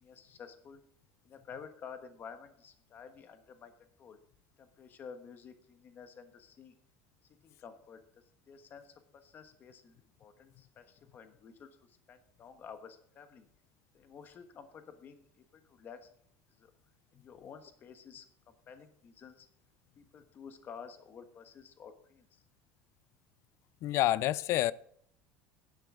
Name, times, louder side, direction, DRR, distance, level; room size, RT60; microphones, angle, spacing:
voice 1, 0.0-0.8 1.2-3.7 4.0-4.2 4.6-6.7 7.4-13.5 13.9-16.1 16.6-16.7 17.1-19.5 20.0-22.4, left 6 dB, 30° left, 1.2 m, -51 dB
voice 2, 23.8-24.7, left 15 dB, 45° left, 0.4 m, -28 dB
12.0 x 10.5 x 3.8 m
cardioid pair, 155°, 6 cm